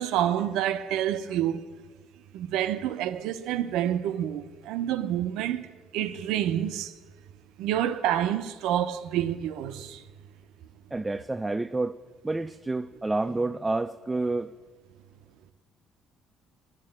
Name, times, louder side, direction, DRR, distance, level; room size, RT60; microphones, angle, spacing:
voice 1, 0.0-1.6 2.3-6.9 7.6-10.0, right 11 dB, 85° right, 0.5 m, -28 dB
voice 2, 10.9-14.5, right 2 dB, 15° right, 0.3 m, -29 dB
9.7 x 8.8 x 7.6 m
cardioid pair, 95°, 0 cm